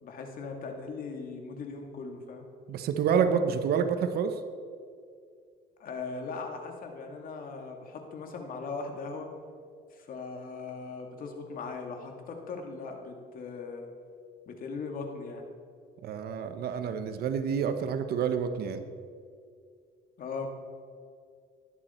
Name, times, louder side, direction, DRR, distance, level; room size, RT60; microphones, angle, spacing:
voice 1, 0.0-2.4 5.8-9.3 9.9-13.9 14.5-15.4 20.2-20.5, left 4 dB, 55° left, 3 dB, 2.3 m, -39 dB
voice 2, 2.7-4.3 16.0-18.8, right 7 dB, 65° right, 9 dB, 1.1 m, -28 dB
18.5 x 12.0 x 4.5 m, 2.3 s
cardioid pair, 110°, 17 cm